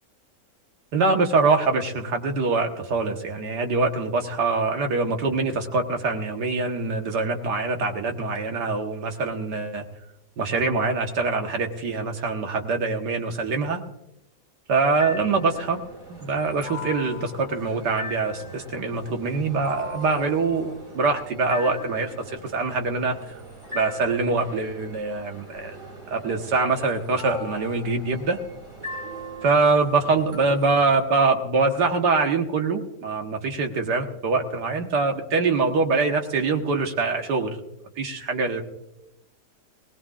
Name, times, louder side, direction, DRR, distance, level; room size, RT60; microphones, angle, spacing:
voice 1, 0.9-9.8 10.4-13.8 14.7-15.8 16.1-23.4 23.7-25.8 26.1-28.4 29.4-37.6 38.0-38.6, right 3 dB, 75° right, 4 dB, 1.9 m, -24 dB
sound 1, 15.0-31.0, left 1 dB, 45° right, 5.1 m, -40 dB
20.5 x 18.5 x 2.5 m, 0.86 s
omnidirectional pair, 1.8 m